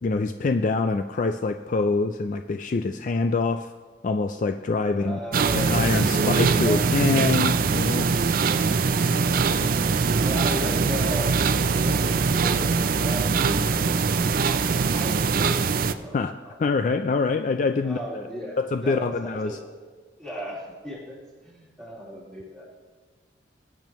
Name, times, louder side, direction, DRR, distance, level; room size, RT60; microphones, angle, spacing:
voice 1, 0.0-3.7 4.0-5.2 5.5-8.1 16.1-16.3 16.6-18.3 18.7-19.6, left 3 dB, 40° left, 7 dB, 0.3 m, -25 dB
voice 2, 4.8-6.8 9.0-9.8 10.1-16.2 16.4-16.5 17.8-19.6 20.2-21.2 21.4-22.7, equal, 5° left, -8 dB, 3.8 m, -36 dB
sound 1, 5.3-15.9, right 5 dB, 45° right, 0.4 m, -22 dB
20.5 x 8.8 x 3.1 m, 1.5 s
head